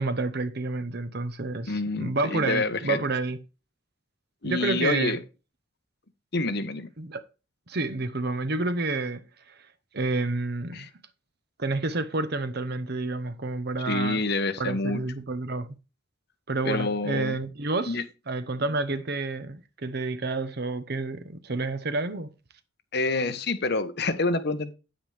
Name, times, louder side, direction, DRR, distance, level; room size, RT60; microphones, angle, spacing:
voice 1, 0.0-3.4 4.4-5.2 7.0-7.2 7.7-9.2 9.5-9.6 9.9-10.9 11.6-14.2 14.6-15.7 16.5-22.3, right 3 dB, 55° right, 1.0 m, -29 dB
voice 2, 1.6-3.0 4.4-5.2 6.3-6.9 10.7-10.9 13.8-15.0 16.6-17.4 17.9-18.0 22.9-24.7, left 3 dB, 60° left, 1.2 m, -27 dB
9.3 x 8.9 x 3.4 m
head